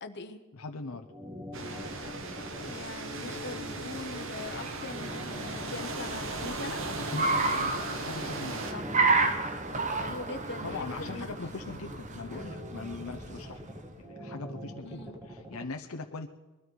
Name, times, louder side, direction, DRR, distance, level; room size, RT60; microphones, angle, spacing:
voice 1, 0.0-0.4 2.6-6.8 8.7-8.8 9.7-11.3 14.8-15.2, left 3 dB, 50° left, 7 dB, 1.0 m, -42 dB
voice 2, 0.5-1.1 7.0-8.7 10.6-13.6 14.0-16.3, left 3 dB, 75° left, 4 dB, 0.8 m, -41 dB
sound 1, 0.9-15.6, left 1 dB, 15° right, 1.7 m, -43 dB
sound 2, 1.5-8.7, right 3 dB, 65° right, 1.2 m, -38 dB
Car, 3.6-13.9, right 3 dB, 35° right, 1.0 m, -32 dB
21.5 x 13.0 x 4.6 m, 1.2 s
head